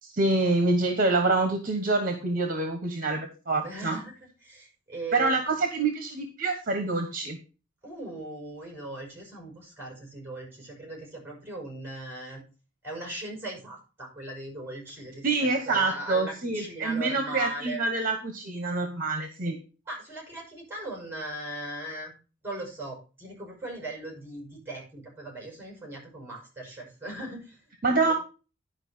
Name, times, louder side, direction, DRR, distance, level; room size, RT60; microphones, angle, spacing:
voice 1, 0.0-4.0 5.1-7.4 15.2-19.6 27.8-28.1, right 3 dB, 45° right, 6 dB, 1.4 m, -26 dB
voice 2, 3.6-5.4 7.8-12.4 12.8-17.8 19.9-22.1 22.4-28.1, right 1 dB, 10° right, 0 dB, 6.0 m, -39 dB
11.0 x 5.2 x 5.6 m, 0.33 s
head